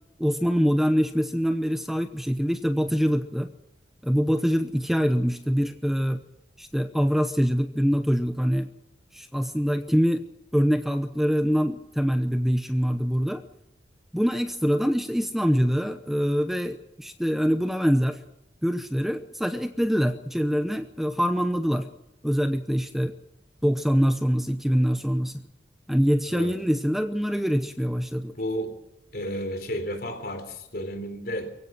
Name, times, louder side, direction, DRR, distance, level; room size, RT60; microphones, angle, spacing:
voice 1, 0.2-3.5 4.0-6.2 6.6-8.7 9.1-10.2 10.5-13.4 14.1-18.2 18.6-21.9 22.2-23.1 23.6-25.4 25.9-28.3, equal, ahead, 8 dB, 0.8 m, -24 dB
voice 2, 28.4-28.7 29.1-31.5, equal, 55° left, 8 dB, 3.9 m, -32 dB
23.5 x 16.0 x 7.6 m, 0.89 s
head